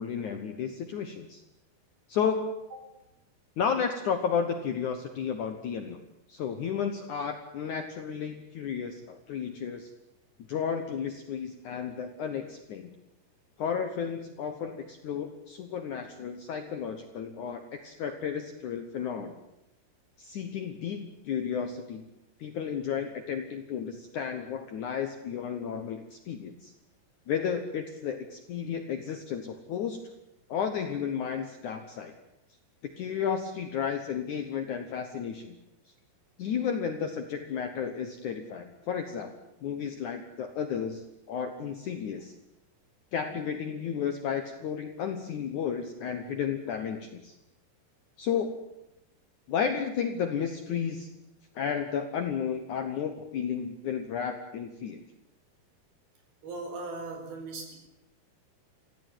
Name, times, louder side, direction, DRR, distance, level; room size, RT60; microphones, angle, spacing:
voice 1, 0.0-1.4 2.1-2.5 3.6-6.0 6.3-9.9 10.5-12.9 13.6-19.3 20.2-22.0 22.4-26.7 27.3-30.0 30.5-32.1 32.8-35.6 36.4-39.3 39.6-42.3 43.1-47.4 48.2-48.5 49.5-51.1 51.6-55.0, left 7 dB, 65° left, 7 dB, 2.1 m, -33 dB
voice 2, 56.4-57.7, right 3 dB, 60° right, 4 dB, 6.6 m, -38 dB
24.5 x 16.0 x 9.3 m, 0.92 s
omnidirectional pair, 5.0 m